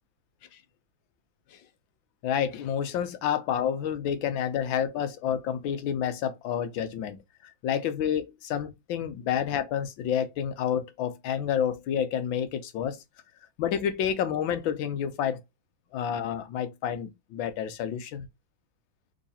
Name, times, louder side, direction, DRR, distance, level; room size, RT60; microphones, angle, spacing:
voice 1, 2.2-13.0 13.6-15.4 15.9-18.3, left 8 dB, 85° left, 1.5 m, -29 dB
3.7 x 3.1 x 4.1 m
omnidirectional pair, 2.1 m